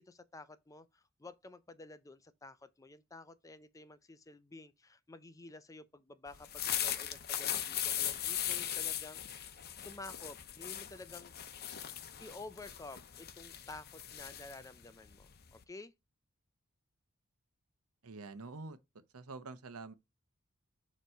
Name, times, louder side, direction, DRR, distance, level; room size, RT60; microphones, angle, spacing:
voice 1, 0.0-9.5 9.8-11.6 12.2-15.9, left 2 dB, 15° left, 0.4 m, -51 dB
sound 1, 6.3-15.6, left 10 dB, 45° left, 0.7 m, -39 dB
voice 2, 18.0-18.8 19.1-19.9, right 3 dB, 85° right, 0.8 m, -46 dB
6.9 x 3.1 x 4.5 m
head